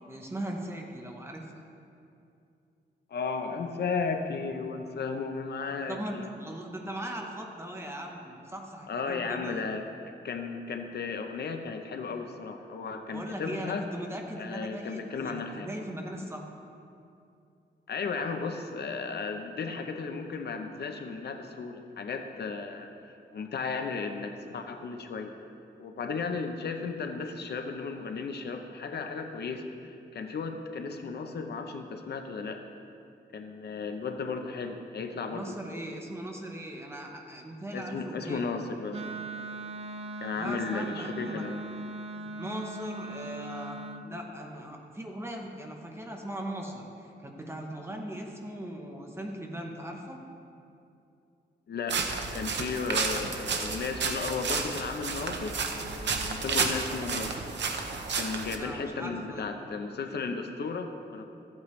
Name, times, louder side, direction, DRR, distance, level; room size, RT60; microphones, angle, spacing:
voice 1, 0.1-1.5 5.9-9.6 13.1-16.5 35.3-38.5 40.3-41.4 42.1-50.2 58.5-59.5, right 1 dB, 15° right, 1 dB, 0.8 m, -39 dB
voice 2, 3.1-6.3 8.9-9.9 10.2-13.9 14.4-15.7 17.9-22.9 23.3-25.3 25.8-32.6 33.3-35.8 37.7-39.1 40.2-41.6 51.7-52.0 52.3-57.4 58.2-61.2, left 4 dB, 65° left, 5 dB, 0.7 m, -35 dB
Wind instrument woodwind instrument, 38.9-44.1, right 2 dB, 35° right, 0.4 m, -39 dB
sound 1, 51.9-58.6, right 4 dB, 80° right, 0.8 m, -31 dB
13.5 x 8.5 x 3.2 m, 2.6 s
wide cardioid pair, 175°, 18 cm